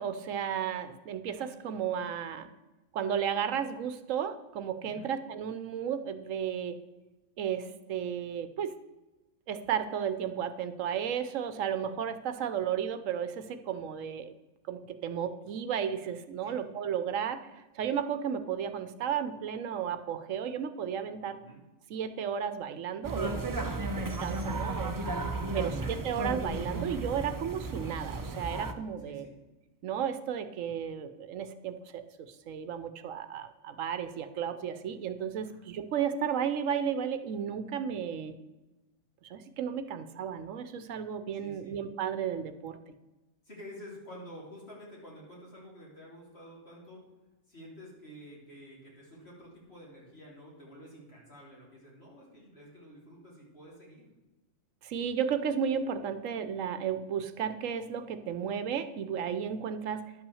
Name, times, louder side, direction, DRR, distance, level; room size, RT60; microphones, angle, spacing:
voice 1, 0.0-2.5 2.9-6.8 7.4-8.7 9.5-14.3 14.7-21.4 21.9-24.9 25.5-29.3 29.8-38.3 39.2-42.8 54.8-60.1, right 8 dB, 75° right, 10 dB, 1.0 m, -33 dB
sound 1, 23.0-28.7, right 2 dB, 25° right, 0.5 m, -34 dB
voice 2, 25.0-25.8 29.0-29.4 35.5-35.6 41.3-41.8 43.4-47.1 47.5-54.1, equal, 50° left, -4 dB, 3.4 m, -50 dB
11.0 x 5.8 x 6.9 m, 1.1 s
omnidirectional pair, 1.4 m